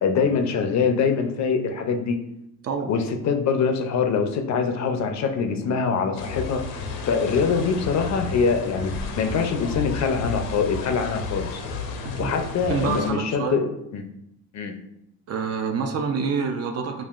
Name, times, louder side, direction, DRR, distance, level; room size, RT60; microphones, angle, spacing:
voice 1, 0.0-2.2 2.9-6.6 7.0-8.9 9.2-11.6 12.2-14.0 14.5-14.7, left 5 dB, 50° left, 5 dB, 0.6 m, -24 dB
voice 2, 2.6-3.0 12.2-12.3 12.7-13.6 15.3-17.0, right 5 dB, 45° right, 5 dB, 0.5 m, -27 dB
sound 1, 6.2-13.1, left 4 dB, 90° left, 0.8 m, -32 dB
5.4 x 2.5 x 2.4 m, 0.79 s
cardioid pair, 110°, 36 cm